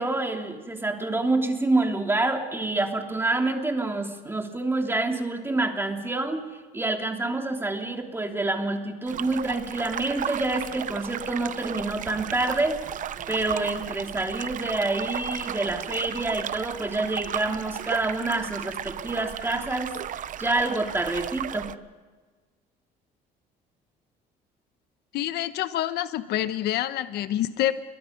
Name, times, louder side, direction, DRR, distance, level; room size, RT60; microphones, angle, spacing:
voice 1, 0.0-6.5 6.7-12.8 13.3-20.0 20.4-21.7, right 2 dB, 15° right, 3 dB, 3.2 m, -27 dB
sound 1, 9.1-21.8, right 10 dB, 50° right, 0.8 m, -35 dB
voice 2, 25.1-27.7, left 13 dB, 75° left, 12 dB, 1.1 m, -27 dB
29.5 x 23.0 x 5.3 m, 1.4 s
cardioid pair, 110°, 17 cm